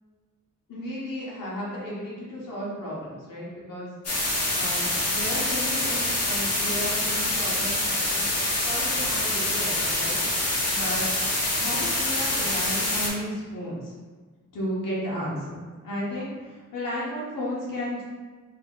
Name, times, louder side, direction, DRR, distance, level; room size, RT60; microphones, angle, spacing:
voice 1, 0.7-3.9 4.5-8.3 8.6-10.2 10.7-11.1 11.5-13.9 14.5-18.0, equal, 90° left, -6 dB, 1.1 m, -34 dB
sound 1, 4.0-13.1, left 1 dB, 50° left, 1.0 m, -26 dB
2.9 x 2.7 x 3.6 m, 1.4 s
wide cardioid pair, 140°, 32 cm